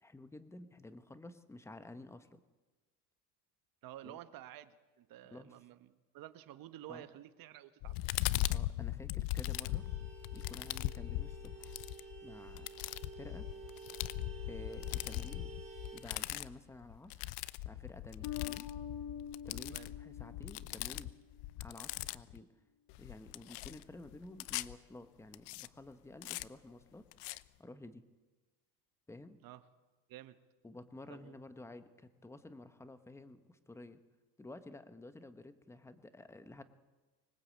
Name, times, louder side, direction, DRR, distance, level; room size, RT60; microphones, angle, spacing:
voice 1, 0.0-2.4 4.0-4.2 5.3-5.5 6.9-7.1 8.5-9.9 10.3-11.8 12.2-12.7 13.2-13.5 14.5-15.5 15.9-17.3 17.6-18.7 19.4-21.1 21.6-22.5 23.0-27.0 27.6-28.0 29.1-29.4 30.6-34.0 34.4-36.6, left 2 dB, 5° left, 11 dB, 1.0 m, -52 dB
voice 2, 3.8-8.0 19.7-19.9 29.4-29.6 30.1-30.4 31.1-31.3, right 13 dB, 50° right, 12 dB, 1.3 m, -51 dB
sound 1, 7.8-22.4 22.9-24.7 25.3-25.7 26.2-26.4 27.1-27.4, left 17 dB, 70° left, 0.8 m, -39 dB
Vehicle horn car horn honking, 9.4-16.0, right 4 dB, 15° right, 6.9 m, -51 dB
Bass guitar, 18.2-21.3, left 9 dB, 45° left, 2.7 m, -45 dB
25.0 x 20.5 x 8.4 m, 1.2 s
cardioid pair, 155°, 45 cm